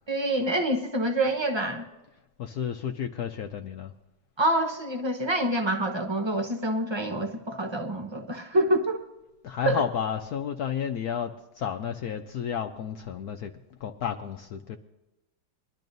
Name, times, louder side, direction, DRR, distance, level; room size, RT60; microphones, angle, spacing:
voice 1, 0.1-1.8 4.4-9.0 9.6-9.8, right 1 dB, 30° right, 3 dB, 0.4 m, -26 dB
voice 2, 2.4-3.9 9.4-13.5 13.8-14.8, left 8 dB, 70° left, 6 dB, 0.9 m, -32 dB
22.0 x 12.0 x 2.6 m, 1.0 s
omnidirectional pair, 2.1 m